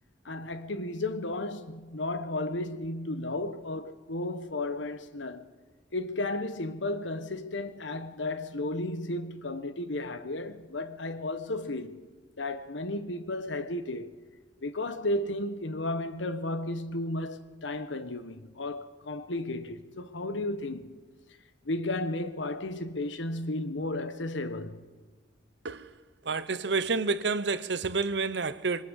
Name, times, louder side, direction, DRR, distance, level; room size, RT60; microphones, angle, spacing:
voice 1, 0.2-5.5 5.9-12.1 12.4-14.1 14.6-21.0 21.6-24.9, left 2 dB, 85° left, 1.2 m, -33 dB
voice 2, 26.2-28.8, right 4 dB, 70° right, 1.0 m, -29 dB
25.0 x 22.0 x 6.5 m
head